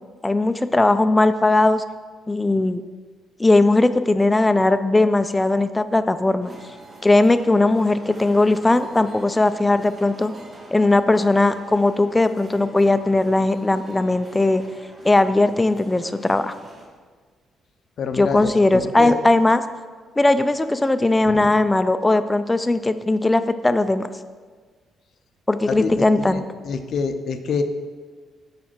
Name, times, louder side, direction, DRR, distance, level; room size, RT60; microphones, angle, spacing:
voice 1, 0.2-1.8 2.3-2.8 3.4-6.5 7.0-10.3 10.7-14.6 15.0-16.6 18.1-19.6 20.2-24.1 25.5-26.4, left 2 dB, 15° left, 11 dB, 0.3 m, -18 dB
sound 1, 6.4-16.9, right 2 dB, 35° right, 1.7 m, -45 dB
voice 2, 18.0-19.1 21.2-21.5 25.7-26.4 26.6-27.6, left 5 dB, 60° left, 8 dB, 0.5 m, -27 dB
6.3 x 5.1 x 4.5 m, 1.5 s
cardioid pair, 90°, 0 cm